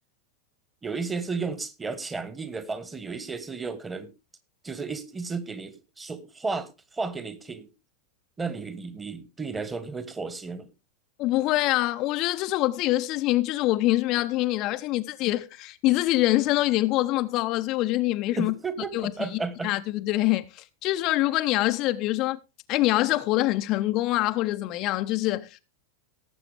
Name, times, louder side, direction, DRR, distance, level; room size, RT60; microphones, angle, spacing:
voice 1, 0.8-4.1 4.6-7.7 8.4-10.7 18.3-19.7, right 4 dB, 15° right, 1.5 m, -33 dB
voice 2, 11.2-18.5 18.9-19.1 19.6-22.4 22.7-25.6, left 17 dB, 40° left, 0.7 m, -25 dB
18.0 x 7.7 x 3.4 m
figure-of-eight pair, 90°, 0 cm